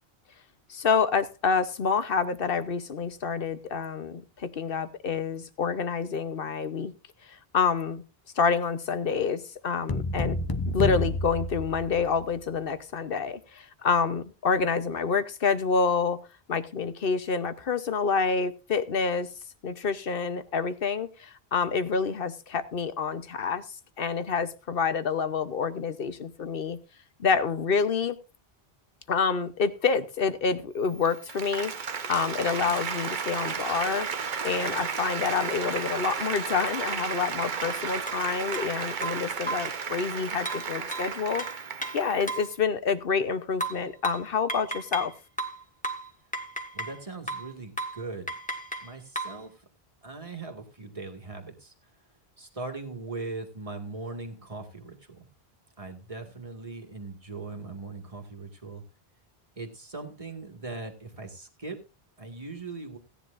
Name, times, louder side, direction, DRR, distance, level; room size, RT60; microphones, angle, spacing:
voice 1, 0.7-6.9 7.3-8.0 8.4-10.4 10.7-16.2 16.5-19.3 19.6-23.6 24.0-26.8 27.2-28.2 29.1-31.7 32.1-34.1 34.4-41.4 41.9-45.1, left 5 dB, 60° left, 11 dB, 1.1 m, -27 dB
sound 1, 9.9-12.4, left 2 dB, 25° left, 0.7 m, -29 dB
Applause, 30.9-42.5, right 6 dB, 50° right, 1.0 m, -33 dB
sound 2, 38.1-38.2 38.5-38.7 39.0-39.8 40.5-42.5 43.6-45.1 45.4-47.0 47.3-47.5 47.8-48.0 48.3-49.4, right 2 dB, 10° left, 1.6 m, -34 dB
voice 2, 46.7-48.3 48.8-49.6 50.0-51.7 52.4-55.3 55.8-58.8 59.6-61.8 62.2-63.0, right 3 dB, 35° right, 2 dB, 2.2 m, -40 dB
17.0 x 10.0 x 2.6 m, 0.31 s
omnidirectional pair, 1.1 m